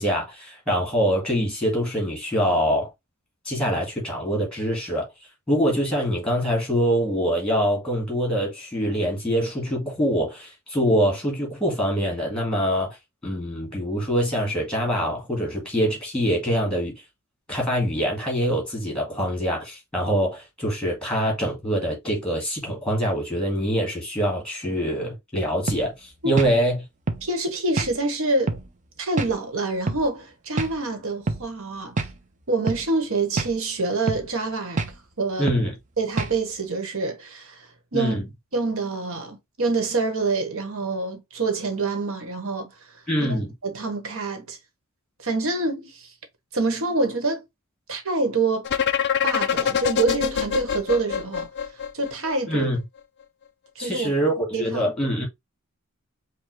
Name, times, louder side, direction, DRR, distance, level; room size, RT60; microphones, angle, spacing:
voice 1, 0.0-2.9 3.5-5.1 5.5-13.0 13.2-17.0 17.5-26.8 35.4-35.7 37.9-38.2 43.1-43.5 52.5-52.8 53.8-55.3, equal, 5° left, 1.8 m, -24 dB
sound 1, 25.7-25.9 26.4-26.6 27.1-27.3 27.8-27.9 28.5-28.7 29.2-29.3 29.9-30.1 30.6-30.8 31.3-31.4 32.0-32.1 32.7-32.8 33.4-33.6 34.1-34.3 34.8-34.9 35.5-35.7 36.2-36.4, right 3 dB, 35° right, 0.6 m, -26 dB
voice 2, 27.2-28.6 29.0-32.0 32.5-34.8 35.2-35.5 36.0-38.1 38.5-42.7 43.2-44.6 45.2-46.1 46.5-47.4 47.9-48.7 49.2-51.5 51.9-52.7 53.7-54.2 54.5-54.8, right 3 dB, 70° right, 1.3 m, -26 dB
sound 2, 48.6-52.5, left 8 dB, 50° left, 0.5 m, -24 dB
5.4 x 2.2 x 3.1 m
head